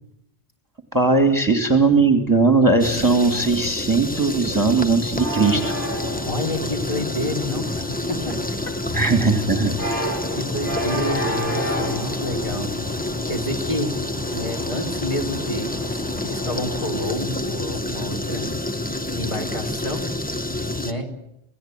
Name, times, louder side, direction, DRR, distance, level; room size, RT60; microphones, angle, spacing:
voice 1, 0.9-5.8 8.9-10.0, right 3 dB, 15° right, 6 dB, 2.4 m, -19 dB
sound 1, 2.8-20.9, left 2 dB, 10° left, 1.1 m, -28 dB
sound 2, 5.2-17.0, equal, 80° left, 6.8 m, -32 dB
voice 2, 6.2-8.4 8.7-9.1 10.3-12.7 13.3-13.9 14.3-18.5 19.2-20.0 20.8-21.1, left 1 dB, 25° left, 2 dB, 4.0 m, -29 dB
28.0 x 17.0 x 9.1 m, 0.83 s
omnidirectional pair, 1.2 m